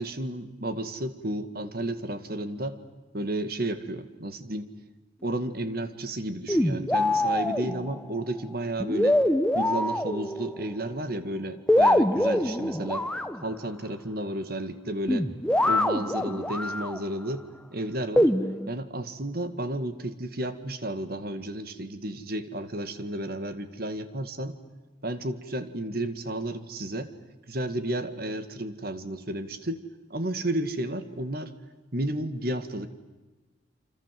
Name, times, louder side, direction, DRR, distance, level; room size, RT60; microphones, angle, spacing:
voice 1, 0.0-2.8 3.1-4.7 5.2-9.2 9.5-13.1 13.4-15.3 15.6-17.4 17.7-18.3 18.7-24.6 25.0-27.1 27.5-31.5 31.9-32.9, right 1 dB, 50° right, 11 dB, 2.1 m, -32 dB
sound 1, 6.5-8.1 8.8-10.7 11.7-13.5 15.1-17.0 18.2-18.7, left 1 dB, 5° left, 1.0 m, -24 dB
29.0 x 26.5 x 7.8 m, 1.2 s
head